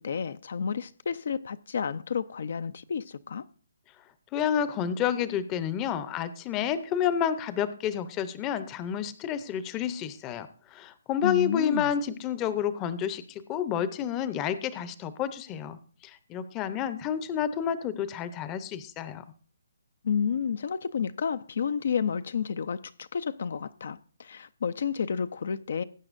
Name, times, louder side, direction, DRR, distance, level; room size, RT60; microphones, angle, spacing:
voice 1, 0.0-3.4 11.2-11.9 20.0-25.8, left 6 dB, 60° left, 0.5 m, -31 dB
voice 2, 4.3-10.5 10.7-19.2, left 9 dB, 20° left, 0.7 m, -30 dB
19.5 x 8.7 x 2.5 m
hypercardioid pair, 155°, 0 cm